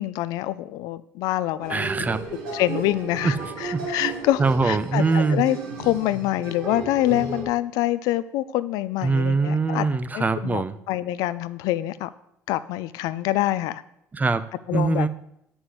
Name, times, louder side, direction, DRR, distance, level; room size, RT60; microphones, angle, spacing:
voice 1, 0.0-1.9 2.5-9.9 10.1-12.1 12.5-13.8 14.7-15.1, left 14 dB, 75° left, 15 dB, 0.5 m, -26 dB
sound 1, 1.6-7.4, right 3 dB, 85° right, 3.5 m, -34 dB
voice 2, 1.7-2.2 3.2-3.8 4.4-5.4 9.0-10.8 14.1-14.4 14.7-15.1, right 4 dB, 25° right, 12 dB, 0.9 m, -23 dB
8.1 x 6.2 x 8.0 m, 0.78 s
supercardioid pair, 70°, 6 cm